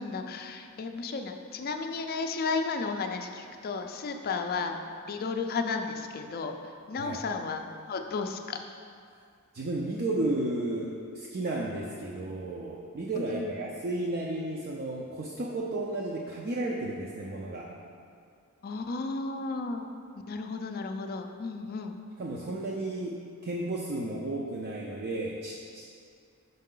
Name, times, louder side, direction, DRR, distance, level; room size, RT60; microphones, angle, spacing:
voice 1, 0.0-4.8 5.1-6.6 6.9-8.6 13.3-13.5 18.6-19.9 20.3-22.0, left 4 dB, 45° left, 5 dB, 0.4 m, -33 dB
voice 2, 9.5-17.7 22.2-25.9, right 2 dB, 45° right, -2 dB, 0.5 m, -33 dB
5.5 x 5.4 x 3.8 m, 2.3 s
head